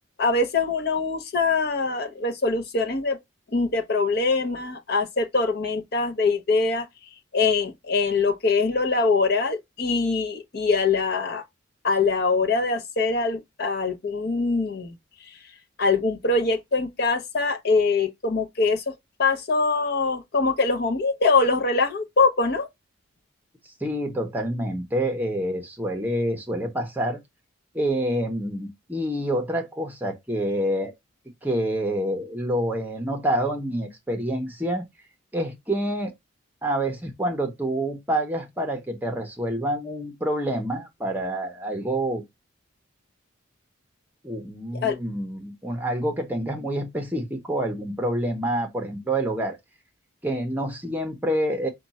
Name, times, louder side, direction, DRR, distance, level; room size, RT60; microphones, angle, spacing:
voice 1, 0.2-3.2 3.5-6.9 7.3-11.4 11.8-14.9 15.8-18.8 19.2-22.7 44.8-45.0, left 3 dB, 50° left, 0.7 m, -23 dB
voice 2, 23.6-27.2 27.7-30.9 31.4-34.8 35.3-36.1 36.6-42.2 44.2-49.6 50.2-51.7, right 1 dB, 10° right, 0.8 m, -27 dB
5.1 x 2.3 x 4.1 m
head